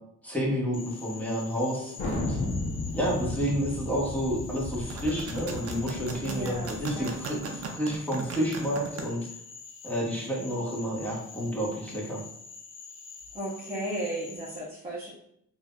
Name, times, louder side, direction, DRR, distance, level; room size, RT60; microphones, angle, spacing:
voice 1, 0.2-2.4 2.9-7.4 7.7-9.3 9.8-12.2, equal, 5° left, -5 dB, 1.4 m, -30 dB
Frog, 0.7-14.6, left 5 dB, 40° left, 0.5 m, -46 dB
Thunder, 2.0-7.1, left 2 dB, 85° left, 1.0 m, -34 dB
sound 1, 4.7-9.0, right 5 dB, 50° right, 0.7 m, -37 dB
voice 2, 6.2-7.6 13.3-15.1, right 1 dB, 20° right, -9 dB, 1.3 m, -36 dB
3.7 x 2.8 x 2.2 m, 0.72 s
cardioid pair, 90°, 30 cm